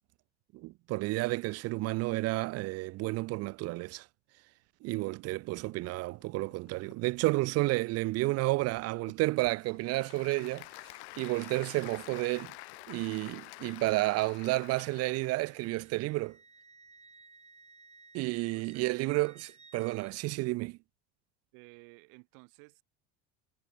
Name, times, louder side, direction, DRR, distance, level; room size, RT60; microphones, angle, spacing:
voice 1, 0.5-4.1 4.8-12.5 12.9-16.4 18.1-20.8, right 21 dB, 50° right, 0.4 m, -31 dB
sound 1, 5.4-12.9, left 26 dB, 70° left, 1.9 m, -61 dB
Applause / Crowd, 9.3-15.7, left 22 dB, 85° left, 1.2 m, -49 dB
Wind instrument woodwind instrument, 14.4-20.2, right 4 dB, 20° right, 4.3 m, -59 dB
voice 2, 18.5-18.9 21.5-22.8, right 36 dB, 75° right, 2.2 m, -55 dB
supercardioid pair, 90°, 32 cm